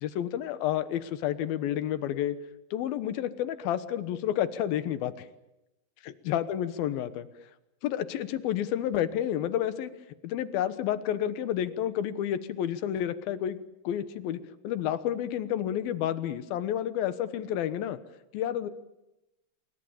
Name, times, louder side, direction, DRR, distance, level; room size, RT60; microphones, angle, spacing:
voice 1, 0.0-2.4 2.7-5.1 6.0-7.3 7.8-9.9 10.2-13.6 13.8-18.0 18.3-18.7, left 11 dB, 75° left, 12 dB, 2.9 m, -30 dB
27.5 x 24.5 x 7.3 m, 0.94 s
omnidirectional pair, 4.5 m